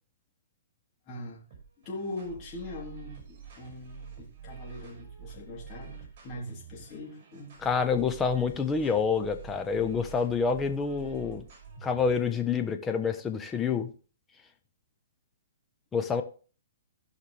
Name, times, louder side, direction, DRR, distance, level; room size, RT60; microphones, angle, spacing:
voice 1, 1.1-1.4 1.9-7.5, left 2 dB, 35° left, -2 dB, 3.5 m, -41 dB
sound 1, 1.5-12.3, right 7 dB, 45° right, 5.2 m, -47 dB
voice 2, 7.6-11.4 11.8-13.9 15.9-16.2, left 5 dB, 15° left, 6 dB, 1.0 m, -27 dB
16.5 x 5.8 x 3.4 m, 0.38 s
hypercardioid pair, 135°, 0 cm